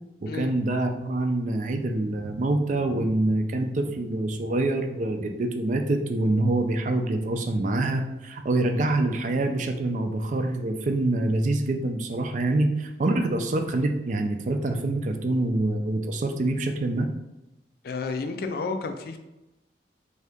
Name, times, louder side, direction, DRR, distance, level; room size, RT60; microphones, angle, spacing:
voice 1, 0.2-17.1, right 2 dB, 45° right, 6 dB, 0.4 m, -25 dB
voice 2, 17.8-19.2, left 4 dB, 55° left, 6 dB, 0.4 m, -31 dB
3.6 x 2.8 x 3.4 m, 0.97 s
head